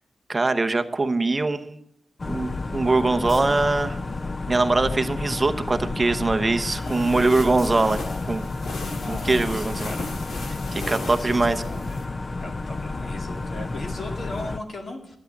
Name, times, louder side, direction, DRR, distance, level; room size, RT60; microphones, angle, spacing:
voice 1, 0.3-1.8 2.3-4.0 4.5-8.0 8.3-8.4 9.1-9.9 10.7-11.6, right 3 dB, 25° right, 8 dB, 0.9 m, -22 dB
sound 1, 2.2-14.6, left 3 dB, 35° left, 0.5 m, -31 dB
sound 2, 6.6-12.0, left 2 dB, 85° left, 2.0 m, -37 dB
voice 2, 6.8-8.5 8.9-10.2 10.8-12.0 12.4-15.2, left 2 dB, 55° left, 3 dB, 2.2 m, -38 dB
12.0 x 9.2 x 7.2 m, 0.79 s
wide cardioid pair, 155°, 0 cm